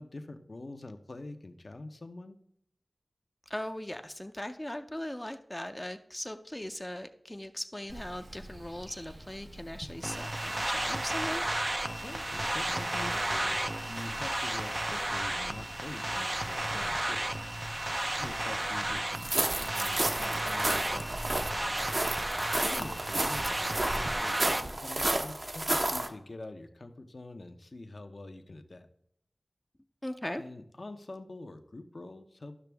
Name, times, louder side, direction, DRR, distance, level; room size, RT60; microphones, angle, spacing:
voice 1, 0.0-2.4 12.0-17.4 18.2-21.3 22.6-28.9 30.4-32.6, left 2 dB, 65° left, 7 dB, 0.8 m, -45 dB
voice 2, 3.5-11.4 30.0-30.4, left 1 dB, 20° left, 7 dB, 0.6 m, -39 dB
Insect, 7.9-24.1, right 1 dB, 80° right, 1.1 m, -47 dB
sound 1, 10.0-24.6, right 1 dB, 30° right, 0.5 m, -33 dB
sound 2, 19.1-26.1, right 1 dB, 55° right, 0.9 m, -32 dB
12.5 x 6.0 x 3.4 m, 0.72 s
wide cardioid pair, 40°, 0 cm